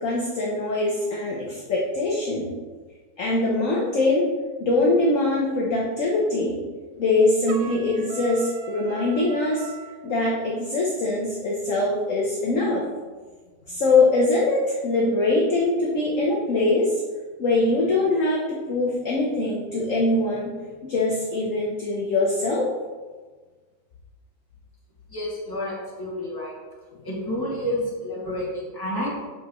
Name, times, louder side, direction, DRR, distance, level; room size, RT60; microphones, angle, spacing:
voice 1, 0.0-2.5 3.2-4.2 4.6-6.6 7.0-9.7 10.0-12.9 13.7-16.9 17.4-20.5 20.8-22.7, left 2 dB, 50° left, -4 dB, 1.2 m, -23 dB
Trumpet, 7.5-10.0, right 5 dB, 90° right, 1.4 m, -39 dB
voice 2, 25.1-26.5 27.0-29.2, left 1 dB, 10° left, -7 dB, 2.2 m, -29 dB
7.8 x 6.5 x 3.1 m, 1.4 s
omnidirectional pair, 2.1 m